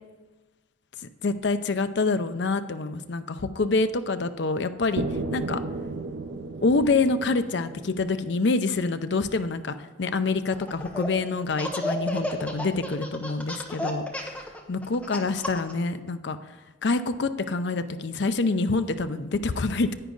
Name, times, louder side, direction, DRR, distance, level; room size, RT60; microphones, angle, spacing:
voice 1, 1.2-5.0 5.3-5.6 6.6-14.3 14.7-16.4 16.8-19.9, left 3 dB, 60° left, 10 dB, 0.5 m, -26 dB
sound 1, 5.0-8.9, right 3 dB, 80° right, 0.6 m, -34 dB
Laughter, 10.5-11.1 11.5-15.7, left 1 dB, 5° left, 0.9 m, -32 dB
10.0 x 9.1 x 3.9 m, 1.2 s
head